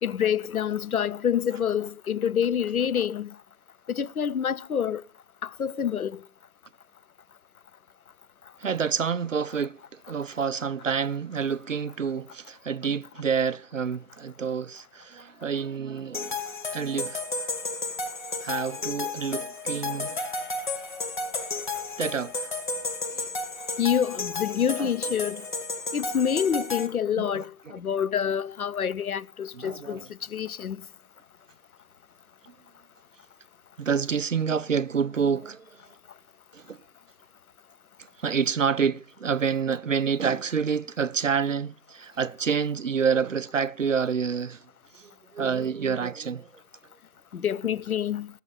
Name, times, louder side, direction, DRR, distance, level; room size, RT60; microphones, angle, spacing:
voice 1, 0.0-3.3 3.9-5.0 5.4-6.2 23.8-25.4 25.9-30.0 30.3-30.8 47.3-48.3, left 8 dB, 70° left, 0.6 m, -27 dB
voice 2, 8.6-9.8 10.1-16.4 16.7-17.4 18.4-20.2 22.0-22.5 23.2-23.3 24.8-24.9 27.2-27.7 29.5-30.0 33.8-35.7 36.5-36.8 38.2-44.6 44.9-46.5, right 6 dB, 55° right, 0.5 m, -28 dB
sound 1, 16.1-26.9, left 3 dB, 30° left, 1.2 m, -32 dB
19.5 x 6.5 x 4.0 m
figure-of-eight pair, 155°, 46 cm